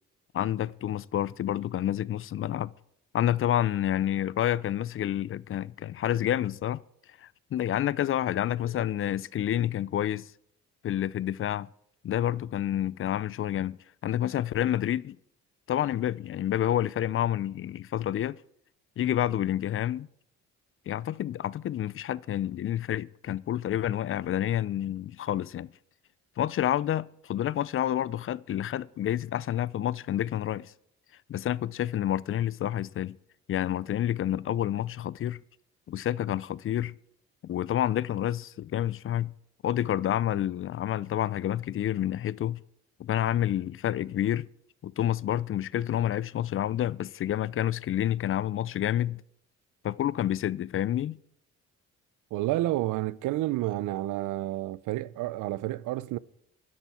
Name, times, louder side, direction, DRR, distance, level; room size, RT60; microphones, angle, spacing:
voice 1, 0.3-2.7 3.1-6.8 7.2-10.3 10.8-11.7 12.0-13.8 14.0-15.2 15.7-18.4 19.0-20.1 20.9-25.7 26.4-30.7 31.3-33.2 33.5-35.4 35.9-37.0 37.4-39.3 39.6-42.6 43.0-44.5 44.8-49.2 49.8-51.2, left 11 dB, 45° left, 0.4 m, -29 dB
voice 2, 52.3-56.2, right 16 dB, 90° right, 0.5 m, -30 dB
12.5 x 10.5 x 4.3 m
cardioid pair, 90°, 30 cm